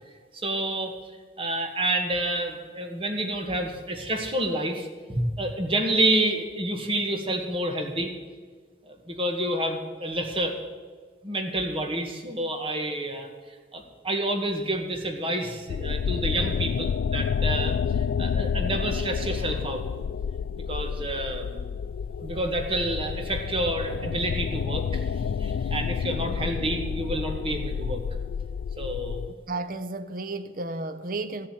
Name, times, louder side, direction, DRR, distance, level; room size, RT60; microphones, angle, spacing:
voice 1, 0.3-1.0 1.4-8.1 8.8-10.6 11.2-13.3 13.7-19.8 20.6-21.7 22.2-25.1 25.4-28.0 28.8-29.2, right 1 dB, 30° right, 1.7 m, -29 dB
sound 1, 15.7-29.3, left 7 dB, 80° left, 0.3 m, -29 dB
voice 2, 29.5-31.5, right 2 dB, 50° right, 0.7 m, -33 dB
13.5 x 7.5 x 9.5 m
head